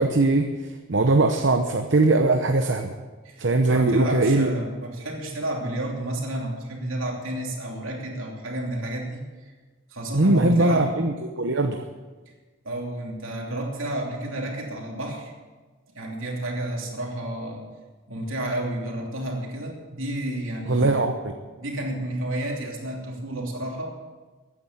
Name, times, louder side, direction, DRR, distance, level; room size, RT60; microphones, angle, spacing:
voice 1, 0.0-3.0 3.4-4.5 10.1-11.8 20.7-21.2, right 2 dB, 55° right, 5 dB, 0.8 m, -21 dB
voice 2, 3.2-9.5 9.9-10.9 12.6-15.3 15.9-17.7 18.1-20.9 21.6-23.9, right 1 dB, 75° right, 0 dB, 3.0 m, -31 dB
14.5 x 9.8 x 7.3 m, 1.3 s
head